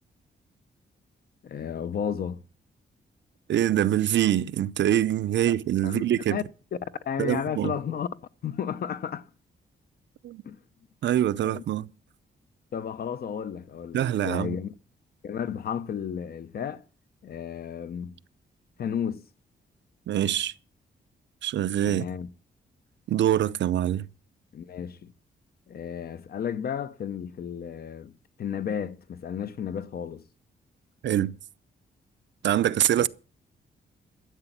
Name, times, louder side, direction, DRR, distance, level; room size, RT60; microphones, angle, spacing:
voice 1, 1.4-2.4 5.8-6.0 6.3-6.4 7.1-8.1 8.4-9.3 10.4-10.6 11.4-11.6 12.7-14.7 15.2-16.8 17.2-18.1 18.8-19.2 21.9-22.3 24.5-25.1 25.7-28.1 28.4-30.2 32.9-33.1, left 8 dB, 55° left, 0.8 m, -33 dB
voice 2, 3.5-6.4 7.2-7.7 10.2-10.4 11.0-11.9 13.9-14.6 20.1-20.5 21.4-22.0 23.1-24.1 31.0-31.4 32.4-33.1, right 11 dB, 75° right, 0.6 m, -24 dB
13.5 x 8.0 x 7.4 m
wide cardioid pair, 145°, 19 cm